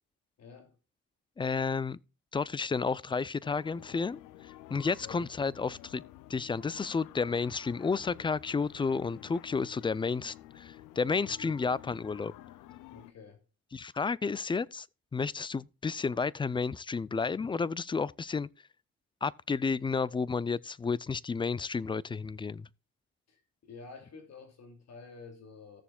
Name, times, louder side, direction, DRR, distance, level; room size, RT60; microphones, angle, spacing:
voice 1, 0.4-0.8 4.8-5.3 11.2-11.6 12.9-13.4 23.3-25.8, left 4 dB, 60° left, 2.7 m, -50 dB
voice 2, 1.4-2.0 2.3-4.2 4.7-6.0 6.3-12.3 13.7-14.9 15.1-18.5 19.2-22.7, left 5 dB, 15° left, 0.3 m, -31 dB
sound 1, 3.4-13.1, left 15 dB, 90° left, 0.5 m, -51 dB
16.5 x 7.0 x 2.3 m
cardioid pair, 90°, 30 cm